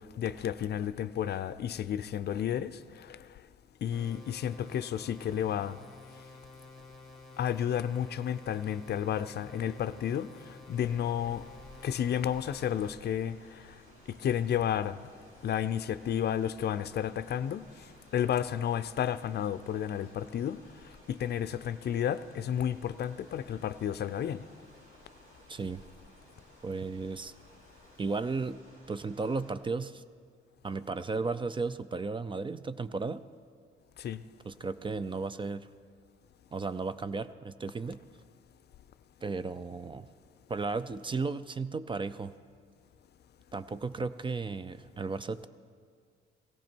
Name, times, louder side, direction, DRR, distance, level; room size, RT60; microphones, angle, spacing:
voice 1, 0.2-2.8 3.1-3.2 3.8-5.8 7.4-10.3 10.7-11.4 11.8-13.4 14.1-15.0 15.4-17.7 18.1-20.6 21.1-24.4 34.0-34.2, left 9 dB, 55° left, 0.5 m, -31 dB
sound 1, 3.9-12.9, left 3 dB, ahead, 2.2 m, -51 dB
sound 2, 10.7-29.5, equal, 85° right, 4.4 m, -58 dB
voice 2, 25.5-25.8 26.6-27.3 28.0-28.6 28.9-30.0 30.6-33.2 34.5-35.7 36.5-38.0 39.2-40.1 40.5-42.4 43.5-45.5, right 4 dB, 25° right, 0.4 m, -34 dB
17.5 x 15.0 x 4.5 m
cardioid pair, 90°, 20 cm